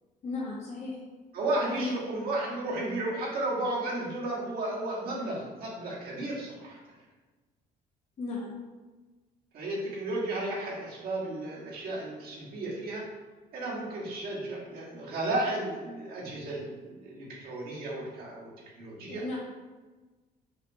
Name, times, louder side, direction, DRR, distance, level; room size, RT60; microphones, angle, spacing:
voice 1, 0.2-1.0 1.6-2.0 8.2-8.5 19.1-19.4, left 3 dB, 40° left, -5 dB, 0.7 m, -35 dB
voice 2, 1.3-6.8 9.5-13.0 13.5-18.5 18.8-19.2, right 2 dB, 65° right, -5 dB, 1.3 m, -33 dB
5.1 x 2.5 x 2.6 m, 1.3 s
cardioid pair, 110°, 17 cm